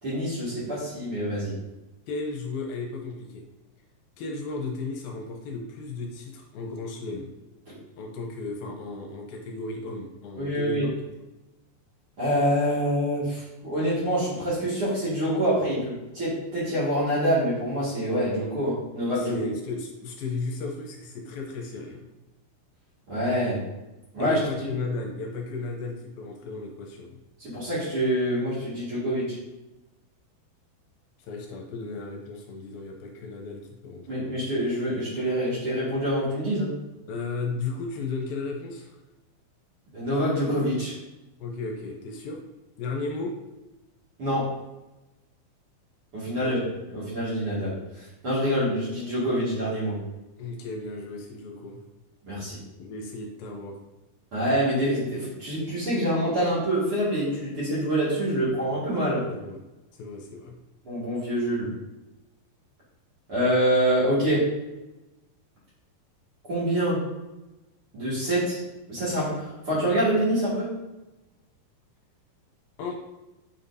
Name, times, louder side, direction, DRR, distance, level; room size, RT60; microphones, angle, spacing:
voice 1, 0.0-1.5 7.7-7.8 10.4-10.9 12.2-19.5 23.1-23.6 24.1-24.4 27.4-29.4 34.1-36.7 39.9-40.9 44.2-44.5 46.1-46.6 46.9-50.0 52.3-52.6 54.3-59.3 60.8-61.7 63.3-64.5 66.5-67.0 67.9-68.6 68.9-70.7, equal, 40° right, -9 dB, 2.8 m, -26 dB
voice 2, 2.1-3.5 4.2-7.3 8.0-10.9 19.2-22.1 24.2-27.2 31.2-34.4 37.1-39.0 41.4-42.4 42.8-43.3 46.3-46.5 50.4-51.8 52.8-53.8 59.3-59.6 60.0-60.6 72.8-73.0, left 3 dB, 75° left, 2 dB, 2.5 m, -35 dB
7.1 x 5.7 x 2.8 m, 1.0 s
omnidirectional pair, 4.3 m